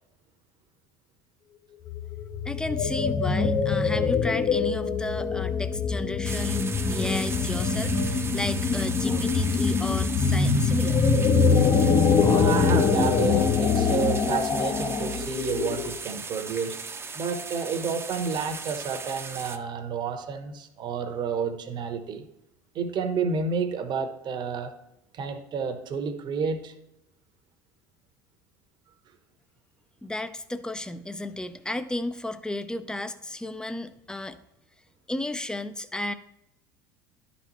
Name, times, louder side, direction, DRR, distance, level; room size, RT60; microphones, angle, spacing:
sound 1, 1.9-16.0, left 5 dB, 35° left, 0.9 m, -24 dB
voice 1, 2.4-11.0 30.0-34.4 35.1-36.1, left 1 dB, 5° left, 11 dB, 0.6 m, -33 dB
sound 2, 6.2-19.6, right 4 dB, 25° right, 0.8 m, -37 dB
voice 2, 12.3-16.8 17.1-22.2 22.7-24.7 25.1-26.7, right 5 dB, 45° right, 7 dB, 1.1 m, -30 dB
11.5 x 4.1 x 3.0 m, 0.84 s
hypercardioid pair, 75°, 10 cm